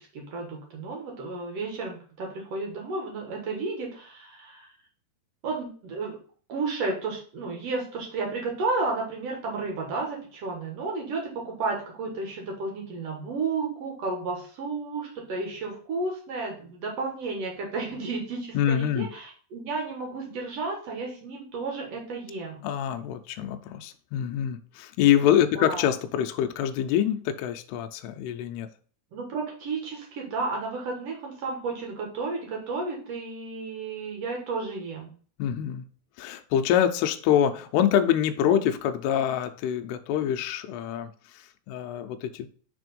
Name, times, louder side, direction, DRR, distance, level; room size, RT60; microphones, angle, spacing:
voice 1, 0.0-4.7 5.4-6.2 6.5-22.7 25.5-25.9 29.1-35.1, right 3 dB, 65° right, 1.6 m, -32 dB
voice 2, 18.6-19.1 22.6-28.7 35.4-35.9 36.2-42.5, left 10 dB, 80° left, 2.6 m, -25 dB
6.7 x 3.5 x 5.2 m
omnidirectional pair, 4.8 m